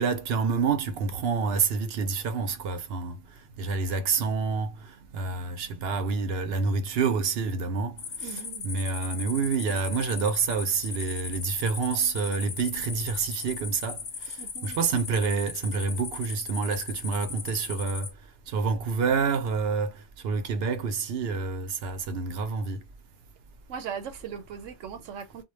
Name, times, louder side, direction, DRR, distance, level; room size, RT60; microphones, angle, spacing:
voice 1, 0.0-3.2 3.6-14.0 14.3-14.4 14.6-18.1 18.5-22.8, right 5 dB, 65° right, 0.7 m, -28 dB
sound 1, 8.0-18.1, left 5 dB, 65° left, 0.3 m, -38 dB
voice 2, 8.2-8.7 14.4-14.8 23.7-25.4, right 7 dB, 90° right, 1.0 m, -39 dB
2.2 x 2.1 x 3.1 m
omnidirectional pair, 1.2 m